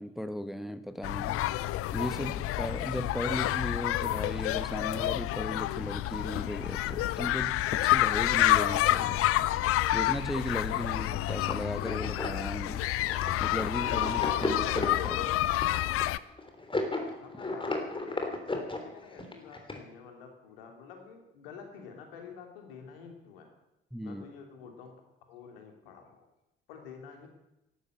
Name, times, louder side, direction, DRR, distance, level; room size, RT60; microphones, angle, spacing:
voice 1, 0.0-1.5 1.9-9.2 9.9-12.9 13.4-15.3 23.9-24.2, equal, ahead, 11 dB, 1.1 m, -36 dB
sound 1, 1.0-16.2, left 15 dB, 50° left, 0.6 m, -29 dB
sound 2, 11.3-19.8, left 2 dB, 15° left, 3.3 m, -35 dB
voice 2, 17.2-18.3 19.0-23.5 24.0-24.9 25.3-26.3 26.7-27.3, left 6 dB, 75° left, 3 dB, 2.9 m, -48 dB
14.5 x 12.0 x 7.8 m, 0.92 s
figure-of-eight pair, 50°, 29 cm